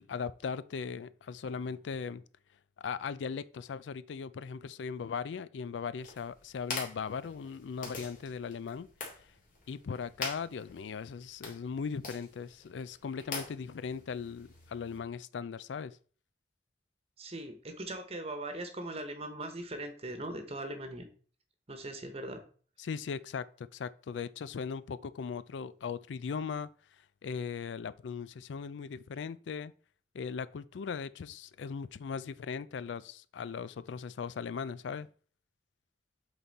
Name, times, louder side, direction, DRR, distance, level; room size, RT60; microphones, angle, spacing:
voice 1, 0.0-2.2 2.8-8.9 9.7-16.0 22.8-26.7 27.2-29.7 30.1-35.1, left 6 dB, 90° left, 0.4 m, -38 dB
sound 1, 6.0-15.0, left 3 dB, 50° left, 2.3 m, -45 dB
voice 2, 17.2-21.1 21.7-22.4, right 1 dB, 35° right, 1.1 m, -40 dB
7.8 x 4.0 x 4.1 m
head